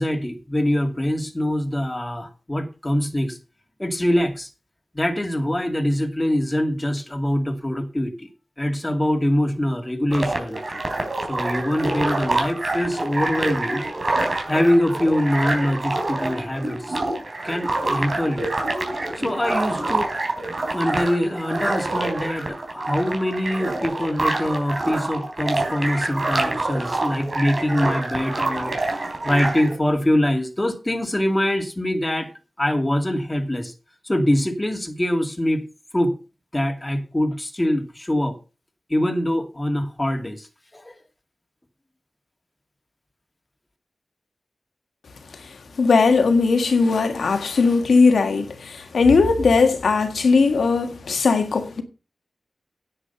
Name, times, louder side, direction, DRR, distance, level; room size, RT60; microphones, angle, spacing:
voice 1, 0.0-3.4 3.8-4.5 4.9-8.3 8.6-10.8 11.3-13.8 14.5-17.0 17.4-18.5 19.2-20.1 20.7-28.8 29.2-32.3 32.6-33.7 34.0-35.6 35.9-36.1 36.5-38.4 38.9-40.5 40.7-41.0, left 1 dB, 20° left, 2.4 m, -23 dB
sound 1, 10.1-29.7, right 2 dB, 50° right, 3.9 m, -26 dB
voice 2, 45.8-51.8, left 4 dB, 90° left, 1.7 m, -18 dB
9.9 x 7.7 x 5.6 m
cardioid pair, 55°, 0 cm